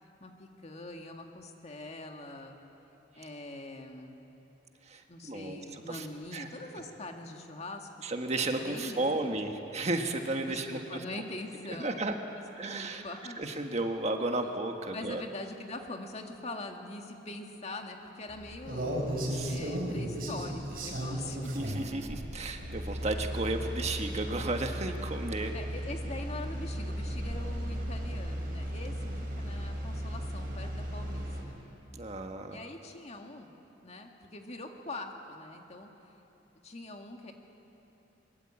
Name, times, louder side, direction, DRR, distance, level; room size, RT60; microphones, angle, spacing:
voice 1, 0.2-2.6 3.2-4.2 5.1-7.9 8.6-9.4 10.5-12.0 12.4-13.4 14.4-14.5 14.9-18.9 19.4-21.5 25.5-29.1 29.4-31.6 32.5-33.5 33.8-35.9 36.6-37.3, left 2 dB, 35° left, 3 dB, 2.0 m, -43 dB
voice 2, 4.9-5.6 5.9-6.1 6.3-6.5 8.0-10.8 11.7-12.1 12.6-13.0 13.4-15.2 19.0-19.6 21.5-25.5 31.9-32.6, right 2 dB, 35° right, 4 dB, 1.5 m, -33 dB
sound 1, 18.3-31.4, equal, 50° right, 5.1 m, -36 dB
23.0 x 22.5 x 8.8 m, 2.9 s
head